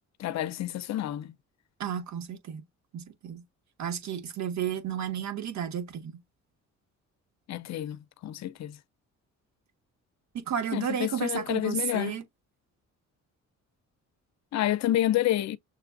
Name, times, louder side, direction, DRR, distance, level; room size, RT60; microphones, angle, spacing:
voice 1, 0.2-1.3 7.5-8.0 8.2-8.8 10.7-12.2 14.5-15.6, left 13 dB, 60° left, 0.6 m, -28 dB
voice 2, 1.8-2.6 2.9-3.4 3.8-6.2 10.3-12.2, right 8 dB, 65° right, 1.6 m, -32 dB
6.5 x 2.4 x 2.6 m
cardioid pair, 90°, 30 cm